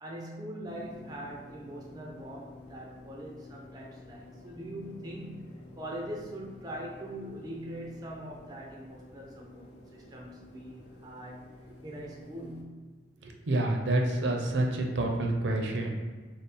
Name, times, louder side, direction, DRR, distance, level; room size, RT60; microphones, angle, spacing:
voice 1, 0.0-11.5 11.8-12.9, right 1 dB, 20° right, -1 dB, 0.4 m, -42 dB
sound 1, 0.7-12.6, left 1 dB, 65° left, 0.5 m, -51 dB
voice 2, 13.2-15.9, right 2 dB, 70° right, 2 dB, 0.5 m, -28 dB
3.4 x 2.0 x 4.1 m, 1.4 s
head